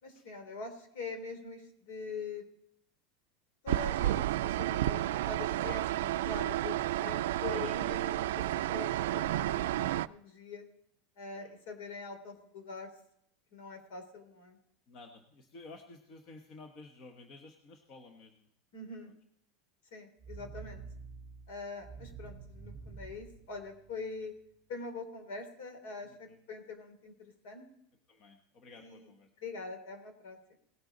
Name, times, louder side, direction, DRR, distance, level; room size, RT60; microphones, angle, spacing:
voice 1, 0.0-2.4 3.6-10.7 11.2-12.9 13.5-14.6 18.7-19.1 19.9-20.8 21.5-24.3 24.7-27.6 28.8-29.1 29.4-30.5, left 4 dB, 65° left, 6 dB, 3.2 m, -44 dB
sound 1, 3.7-10.1, right 14 dB, 85° right, 0.3 m, -31 dB
voice 2, 7.5-8.0 11.3-11.5 14.9-18.5 26.0-26.4 28.1-29.3, left 3 dB, 35° left, 4 dB, 1.1 m, -53 dB
sound 2, 20.2-24.2, right 5 dB, 10° right, 2.1 m, -48 dB
18.5 x 8.1 x 3.9 m, 0.72 s
supercardioid pair, 165°, 0 cm